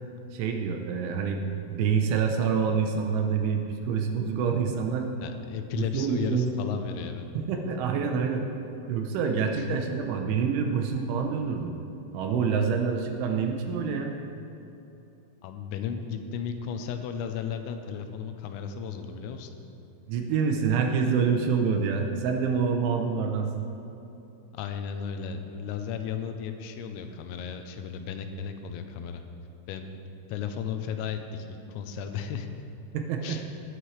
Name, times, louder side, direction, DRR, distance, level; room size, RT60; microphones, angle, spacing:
voice 1, 0.3-1.4 1.7-5.1 5.8-6.5 6.7-6.8 7.3-8.5 8.9-11.8 12.1-14.1 20.1-23.7 32.9-33.4, right 6 dB, 80° right, 4 dB, 3.0 m, -27 dB
voice 2, 5.2-7.3 9.6-9.8 15.4-19.5 24.5-29.2 29.7-29.8 30.3-32.5 33.2-33.6, left 7 dB, 90° left, 6 dB, 3.4 m, -34 dB
19.0 x 9.9 x 3.2 m, 2.8 s
omnidirectional pair, 5.8 m